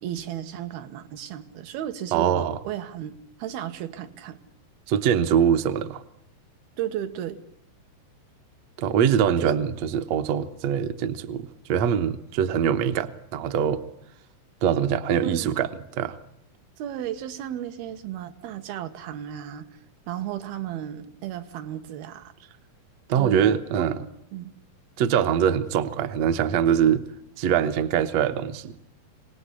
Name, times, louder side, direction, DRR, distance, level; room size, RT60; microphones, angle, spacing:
voice 1, 0.0-4.4 6.8-7.4 9.4-9.5 15.2-15.5 16.8-19.7 20.1-22.3 23.1-24.0 24.3-24.5, right 11 dB, 85° right, 8 dB, 3.3 m, -34 dB
voice 2, 2.1-2.6 4.9-6.0 8.8-13.8 14.6-15.7 16.0-16.2 23.1-24.0 25.0-27.0 27.4-28.7, right 8 dB, 65° right, 9 dB, 1.8 m, -23 dB
27.0 x 19.0 x 10.0 m, 0.79 s
omnidirectional pair, 4.2 m